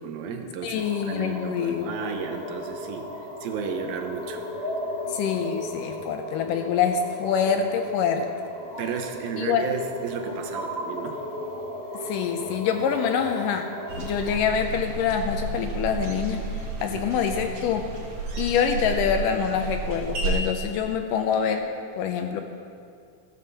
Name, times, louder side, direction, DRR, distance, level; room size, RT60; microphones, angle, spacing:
voice 1, 0.0-3.1 3.4-4.4 8.8-11.2 16.9-17.2, right 6 dB, 80° right, 5 dB, 2.7 m, -33 dB
voice 2, 0.6-1.9 5.1-8.3 9.4-9.6 12.0-13.7 14.0-16.4 16.8-17.9 18.4-22.4, left 7 dB, 80° left, 6 dB, 2.1 m, -25 dB
sound 1, 0.7-14.4, equal, 40° left, 0.6 m, -35 dB
sound 2, 13.9-20.4, right 3 dB, 55° right, 2.7 m, -32 dB
14.5 x 7.6 x 6.8 m, 2.4 s
omnidirectional pair, 4.2 m